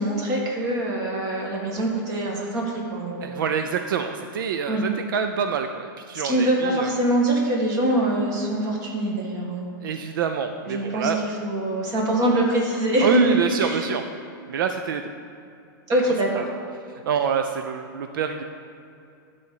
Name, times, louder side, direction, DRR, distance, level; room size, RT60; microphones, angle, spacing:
voice 1, 0.0-3.3 4.7-4.8 6.2-9.6 10.7-11.1 11.4-13.2 13.6-13.8 15.9-16.4, right 1 dB, 35° right, -1 dB, 2.1 m, -24 dB
voice 2, 3.2-6.9 9.8-11.2 13.0-14.0 14.5-15.0 17.0-18.4, right 7 dB, 75° right, 6 dB, 0.5 m, -26 dB
12.5 x 4.2 x 6.6 m, 2.6 s
hypercardioid pair, 140°, 11 cm